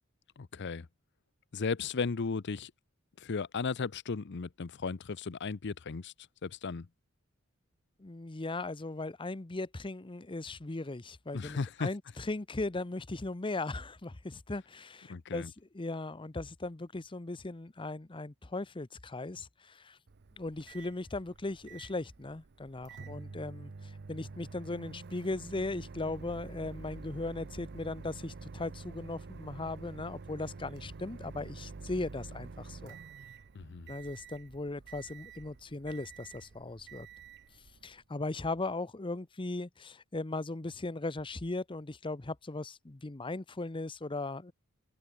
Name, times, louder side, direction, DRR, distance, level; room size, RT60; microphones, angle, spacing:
voice 1, 0.4-0.9 1.5-2.7 3.2-6.1 6.4-6.9 11.3-11.9 15.1-15.5 33.5-33.9, left 4 dB, 55° left, 0.6 m, -35 dB
voice 2, 8.0-15.4 15.7-20.0 20.4-33.0 33.9-37.1 37.8-44.5, left 2 dB, 25° left, 0.8 m, -38 dB
Microwave oven, 20.1-38.0, right 4 dB, 55° right, 0.6 m, -48 dB
open air
head